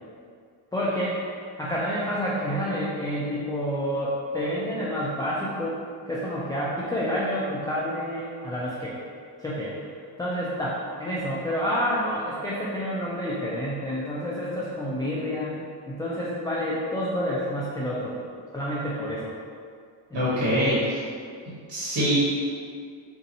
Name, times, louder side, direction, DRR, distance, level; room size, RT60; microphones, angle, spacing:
voice 1, 0.7-1.2 1.6-5.8 6.1-8.9 9.4-9.7 10.2-18.3 18.5-19.3 20.1-20.7, equal, 10° left, -7 dB, 0.3 m, -29 dB
voice 2, 20.1-21.0 21.7-22.2, equal, 50° right, -9 dB, 1.4 m, -24 dB
4.0 x 2.6 x 2.7 m, 2.2 s
cardioid pair, 100°, 48 cm